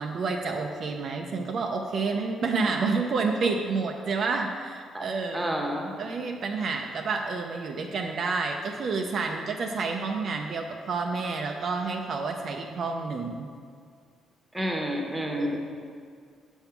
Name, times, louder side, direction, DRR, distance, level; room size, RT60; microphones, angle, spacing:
voice 1, 0.0-5.5 6.0-13.5 15.4-15.6, right 4 dB, 60° right, 2 dB, 0.5 m, -29 dB
voice 2, 5.3-5.9 14.5-15.6, equal, 10° right, 1 dB, 1.0 m, -29 dB
7.0 x 3.6 x 5.8 m, 2.1 s
cardioid pair, 90°, 0 cm